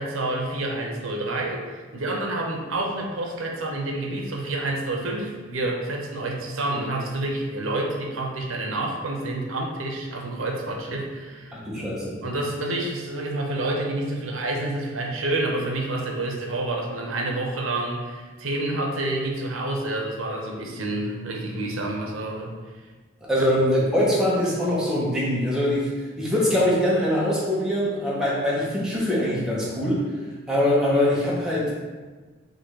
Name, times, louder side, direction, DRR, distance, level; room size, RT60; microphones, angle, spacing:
voice 1, 0.0-11.9 12.2-22.5 23.4-23.5, right 2 dB, 80° right, 0 dB, 0.8 m, -28 dB
voice 2, 11.5-12.2 23.3-30.0 30.5-31.7, left 1 dB, 5° right, -7 dB, 0.9 m, -23 dB
3.8 x 2.6 x 4.6 m, 1.4 s
head